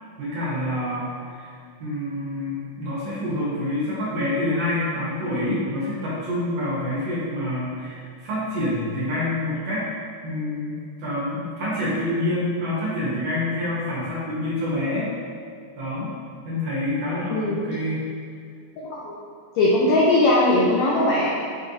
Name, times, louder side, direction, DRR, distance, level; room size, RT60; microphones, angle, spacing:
voice 1, 0.2-1.5 1.8-9.8 10.2-15.1 15.8-16.1 16.4-18.0, left 1 dB, 65° right, -9 dB, 1.7 m, -27 dB
voice 2, 18.8-19.1 19.5-21.3, left 2 dB, 85° left, -5 dB, 1.5 m, -19 dB
6.1 x 3.2 x 2.6 m, 2.3 s
omnidirectional pair, 3.7 m